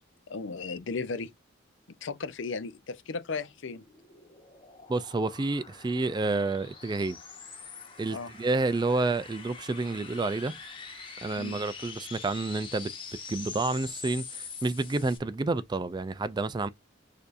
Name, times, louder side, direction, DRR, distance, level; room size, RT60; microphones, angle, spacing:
voice 1, 0.3-1.3 2.0-3.8 8.1-8.3 11.4-11.6, left 4 dB, 65° left, 0.6 m, -35 dB
sound 1, 3.8-15.2, left 5 dB, 25° left, 1.2 m, -44 dB
voice 2, 4.9-7.2 8.0-10.5 11.2-12.9 13.3-16.7, right 3 dB, 20° right, 0.3 m, -29 dB
6.6 x 2.7 x 2.5 m
head